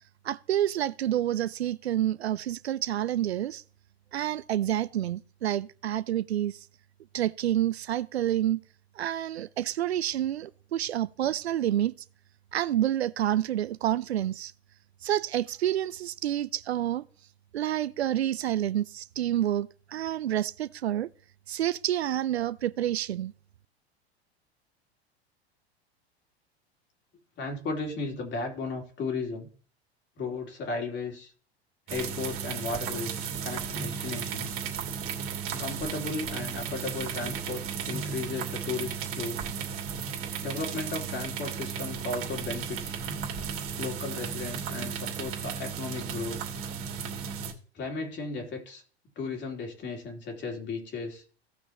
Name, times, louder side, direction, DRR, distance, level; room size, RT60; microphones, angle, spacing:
voice 1, 0.2-3.6 4.1-6.7 7.1-8.6 9.0-11.9 12.5-14.5 15.0-17.1 17.5-21.1 21.5-23.3, right 12 dB, 80° right, 0.5 m, -28 dB
voice 2, 27.4-29.5 30.2-31.3 31.9-34.6 35.6-39.4 40.4-43.0 43.8-46.4 47.7-48.8 49.1-51.2, left 3 dB, 35° left, 3.1 m, -35 dB
sound 1, 31.9-47.5, right 7 dB, 40° right, 2.6 m, -35 dB
17.0 x 6.1 x 2.9 m
figure-of-eight pair, 85°, 32 cm